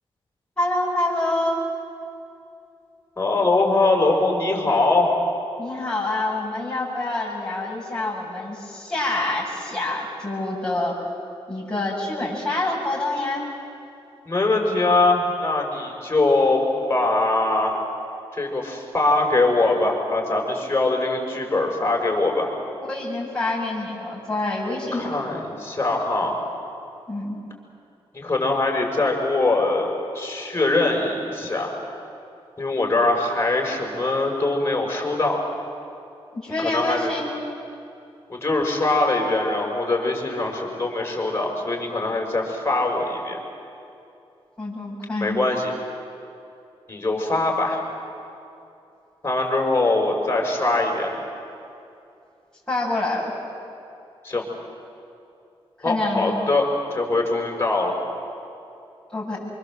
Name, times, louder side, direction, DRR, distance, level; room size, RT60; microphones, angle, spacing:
voice 1, 0.6-1.6 5.6-11.0 11.5-13.4 22.9-25.2 27.1-27.4 36.3-37.3 44.6-45.4 52.7-53.3 55.8-56.3 59.1-59.4, left 2 dB, 5° left, -8 dB, 7.7 m, -26 dB
voice 2, 3.2-5.1 14.3-16.6 16.9-17.8 18.4-22.5 24.7-26.4 28.1-31.8 32.6-35.4 36.6-37.1 38.3-43.4 45.2-45.7 46.9-47.8 49.2-51.1 54.2-54.4 55.8-57.9, left 2 dB, 25° left, 1 dB, 6.4 m, -22 dB
25.5 x 24.0 x 8.0 m, 2.6 s
cardioid pair, 75°, 10 cm